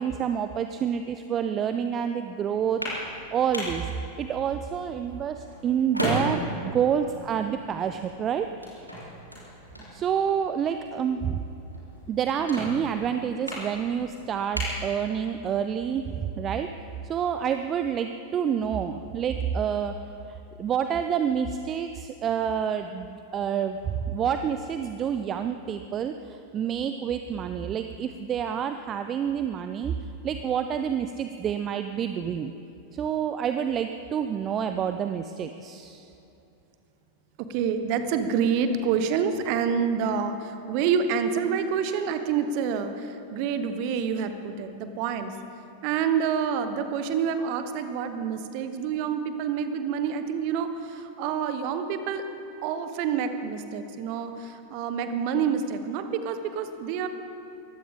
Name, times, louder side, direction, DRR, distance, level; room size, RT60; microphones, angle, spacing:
voice 1, 0.0-2.8 3.3-3.9 4.2-8.9 9.9-11.4 12.1-16.7 17.0-20.0 20.3-29.9 30.2-32.5 32.9-36.1, right 8 dB, 30° right, 8 dB, 0.5 m, -28 dB
sound 1, 2.5-15.6, equal, 90° right, 4.0 m, -36 dB
voice 2, 37.4-45.4 45.8-52.2 52.6-57.1, right 7 dB, 45° right, 9 dB, 1.2 m, -27 dB
22.0 x 15.5 x 3.8 m, 2.8 s
figure-of-eight pair, 90°, 0 cm